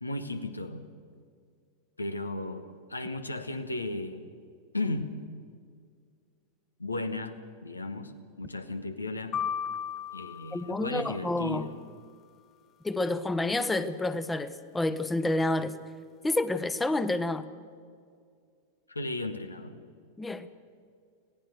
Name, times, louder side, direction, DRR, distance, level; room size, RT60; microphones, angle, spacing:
voice 1, 0.0-0.8 2.0-4.3 4.7-5.1 6.8-7.3 7.6-8.1 8.4-9.4 10.1-11.8 18.9-19.7, left 2 dB, 80° left, 9 dB, 1.5 m, -35 dB
sound 1, 9.3-11.5, left 8 dB, 30° left, 1.1 m, -36 dB
voice 2, 10.5-11.7 12.8-15.8 16.2-17.5 20.2-20.5, left 2 dB, 10° left, 13 dB, 1.1 m, -29 dB
25.0 x 18.0 x 6.8 m, 2.1 s
figure-of-eight pair, 90°, 0 cm